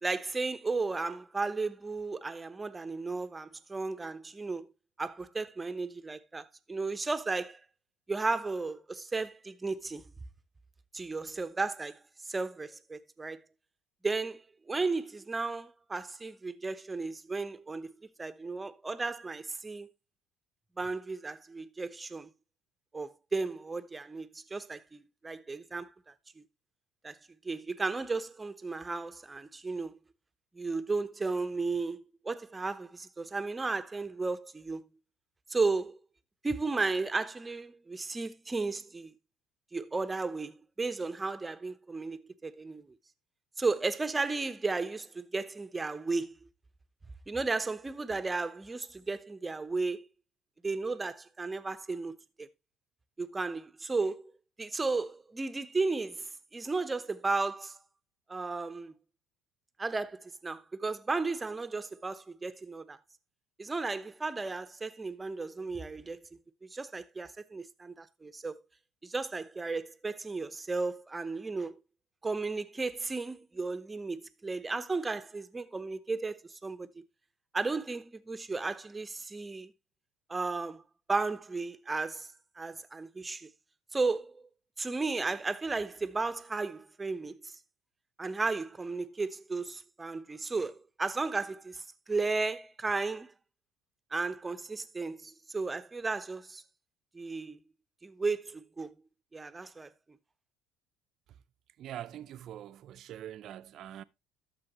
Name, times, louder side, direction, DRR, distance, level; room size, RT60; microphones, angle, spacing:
voice 1, 0.0-4.7 5.0-7.6 8.1-10.1 10.9-13.4 14.0-17.9 18.2-19.9 20.8-22.3 22.9-25.9 26.4-26.5 27.0-27.2 27.4-30.0 30.5-34.8 35.5-36.0 36.4-39.1 39.7-42.9 43.6-46.4 47.3-50.1 50.6-52.5 53.2-54.3 54.6-57.8 58.3-58.9 59.8-63.0 63.6-66.2 66.6-68.6 69.0-71.8 72.2-77.0 77.5-79.7 80.3-80.8 81.1-82.3 82.6-83.5 83.9-84.4 84.8-87.5 88.2-93.3 94.1-96.6 97.1-97.6 98.0-98.9 99.3-99.9, right 3 dB, 20° right, 0.9 m, -34 dB
voice 2, 101.8-104.0, right 11 dB, 55° right, 0.6 m, -44 dB
12.0 x 6.9 x 3.0 m
hypercardioid pair, 70°, 0 cm